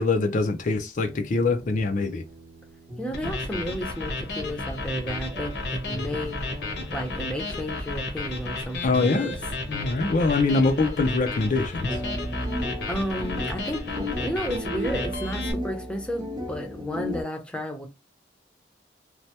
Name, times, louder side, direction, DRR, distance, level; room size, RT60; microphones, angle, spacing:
voice 1, 0.0-2.2 8.8-9.3 9.7-12.0, left 3 dB, 45° left, 0.4 m, -23 dB
sound 1, 0.9-17.2, equal, 25° right, 0.8 m, -37 dB
voice 2, 3.0-6.4 6.9-9.3 9.8-9.9 12.9-17.9, equal, 5° left, 0.6 m, -32 dB
sound 2, 3.1-15.5, left 2 dB, 65° left, 0.8 m, -33 dB
3.2 x 2.1 x 2.8 m
head